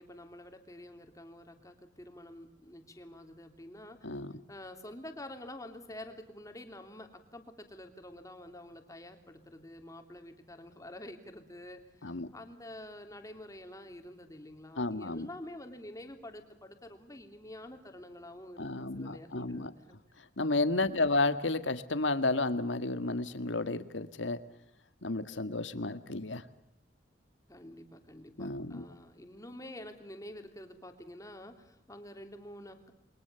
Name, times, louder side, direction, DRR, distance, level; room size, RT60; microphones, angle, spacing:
voice 1, 0.0-4.0 4.5-20.0 27.5-32.9, left 1 dB, 20° left, 6 dB, 3.3 m, -48 dB
voice 2, 14.8-15.3 18.6-19.7 20.2-24.4 25.0-26.5 28.4-28.9, left 2 dB, 85° left, 11 dB, 1.8 m, -32 dB
29.5 x 23.5 x 7.0 m, 0.78 s
head